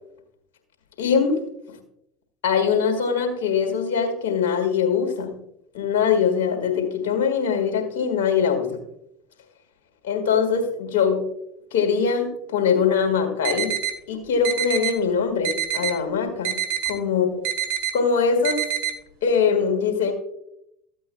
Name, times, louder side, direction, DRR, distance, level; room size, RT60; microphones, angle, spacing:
voice 1, 1.0-1.4 2.4-5.3 5.7-8.7 10.0-11.2 11.7-13.7 14.1-16.5 16.9-17.3 17.9-18.6 19.2-20.1, left 6 dB, 75° left, 4 dB, 1.9 m, -22 dB
sound 1, 13.4-13.9 14.4-14.9 15.4-15.9 16.4-16.9 17.4-17.9 18.4-18.9, right 11 dB, 70° right, 1.3 m, -25 dB
14.5 x 8.3 x 2.3 m, 0.78 s
hypercardioid pair, 80°, 0 cm